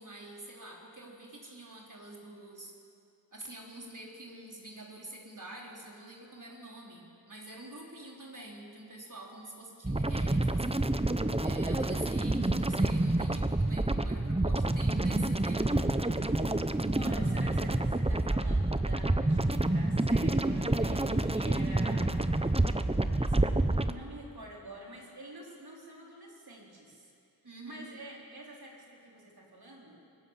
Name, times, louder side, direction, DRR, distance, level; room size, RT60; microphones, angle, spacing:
voice 1, 0.0-2.7 3.3-10.8 11.4-15.7 27.4-27.9, right 2 dB, 55° right, -2 dB, 4.4 m, -47 dB
sound 1, 9.8-23.9, right 2 dB, 15° right, 0.9 m, -28 dB
voice 2, 16.9-22.3 23.0-27.1 27.6-30.0, right 1 dB, 85° right, -3 dB, 4.1 m, -47 dB
25.0 x 18.5 x 7.6 m, 2.5 s
wide cardioid pair, 55°, 37 cm